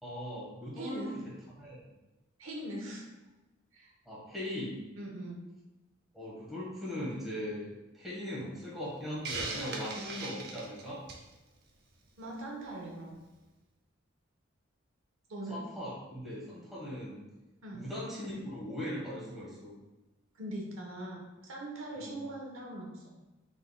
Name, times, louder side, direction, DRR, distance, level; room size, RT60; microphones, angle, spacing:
voice 1, 0.0-1.0 1.6-1.8 4.0-4.8 6.1-11.0 15.5-17.2 17.7-19.8 22.0-22.2, left 1 dB, ahead, -7 dB, 1.3 m, -39 dB
voice 2, 0.8-1.2 2.4-3.1 3.7-3.9 5.0-5.4 12.2-13.2 15.3-15.6 17.6-17.9 20.3-23.1, right 1 dB, 80° right, -2 dB, 1.0 m, -41 dB
Hiss, 9.2-11.3, right 3 dB, 50° right, 0.7 m, -38 dB
5.4 x 3.7 x 2.2 m, 1.1 s
head